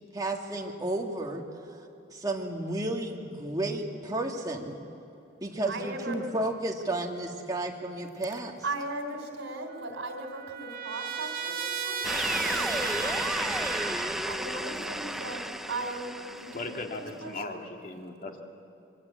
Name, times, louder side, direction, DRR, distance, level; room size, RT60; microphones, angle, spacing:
voice 1, 0.1-1.4 1.7-1.8 2.1-4.8 5.4-8.5, right 2 dB, 20° right, 0 dB, 2.0 m, -32 dB
voice 2, 5.6-6.3 8.6-12.0 12.4-13.7 14.2-17.6, right 2 dB, 80° right, 5 dB, 3.4 m, -38 dB
Trumpet, 9.7-14.4, right 6 dB, 45° right, 2.2 m, -35 dB
sound 1, 12.0-17.0, equal, ahead, 0.6 m, -32 dB
voice 3, 16.5-18.4, left 2 dB, 45° left, 2 dB, 2.2 m, -38 dB
26.5 x 23.0 x 8.5 m, 2.7 s
head